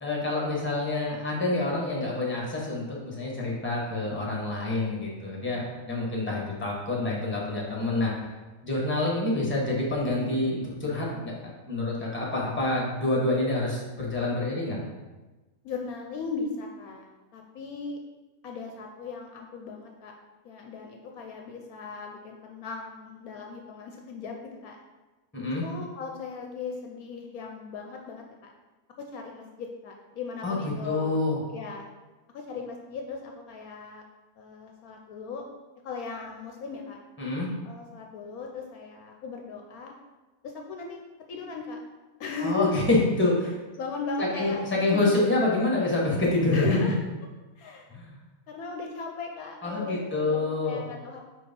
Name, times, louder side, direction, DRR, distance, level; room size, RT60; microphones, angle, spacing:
voice 1, 0.0-8.1 8.6-11.3 11.7-14.8 25.3-25.6 30.4-31.4 37.2-37.5 42.4-43.5 44.2-46.9 47.9-48.2 49.6-50.8, left 2 dB, 10° left, -3 dB, 1.3 m, -27 dB
voice 2, 15.6-18.0 18.4-20.1 20.4-24.8 25.6-28.5 29.0-31.2 31.5-31.9 32.3-34.0 34.4-35.4 35.8-37.0 37.6-39.9 40.4-41.0 41.3-41.8 42.2-42.8 43.8-44.6 44.9-45.0 46.5-47.0 47.6-47.9 48.5-51.2, left 4 dB, 70° left, 2 dB, 1.1 m, -37 dB
4.8 x 4.4 x 5.3 m, 1.2 s
omnidirectional pair, 1.7 m